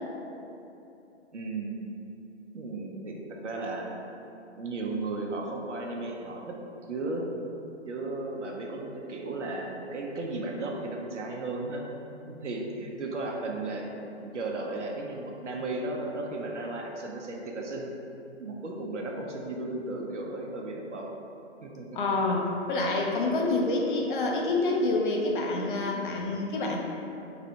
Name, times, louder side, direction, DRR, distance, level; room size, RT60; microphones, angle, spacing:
voice 1, 1.3-1.7 2.5-3.2 3.4-3.9 4.6-6.6 6.9-7.2 7.9-11.8 12.3-14.0 14.3-17.9 18.4-21.1 21.6-21.9, right 2 dB, 80° right, 0 dB, 0.8 m, -35 dB
voice 2, 21.9-26.8, left 2 dB, 45° left, -1 dB, 0.7 m, -27 dB
4.0 x 2.8 x 4.5 m, 2.9 s
hypercardioid pair, 135°, 35 cm